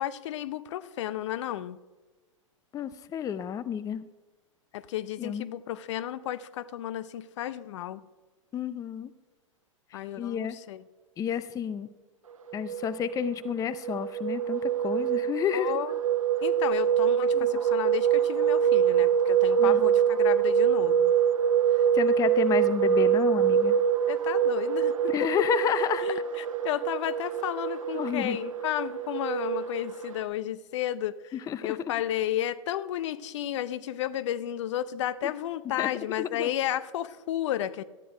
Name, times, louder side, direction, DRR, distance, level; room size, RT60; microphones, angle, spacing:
voice 1, 0.0-1.8 4.7-8.0 9.9-10.8 15.5-16.0 16.4-21.1 21.7-21.8 24.1-25.3 26.0-31.2 31.6-37.8, left 12 dB, 60° left, 16 dB, 0.6 m, -32 dB
voice 2, 2.7-4.0 5.2-5.4 8.5-9.1 10.2-10.6 11.2-11.9 12.5-15.7 17.3-17.5 19.6-20.0 21.9-23.8 25.1-26.1 27.9-28.4 31.3-31.9 35.2-35.3 35.8-35.9 36.2-36.5, left 9 dB, 20° left, 15 dB, 0.5 m, -30 dB
sound 1, 12.5-30.2, right 8 dB, 80° right, 0.8 m, -25 dB
13.0 x 10.0 x 4.9 m, 1.2 s
hypercardioid pair, 110°, 17 cm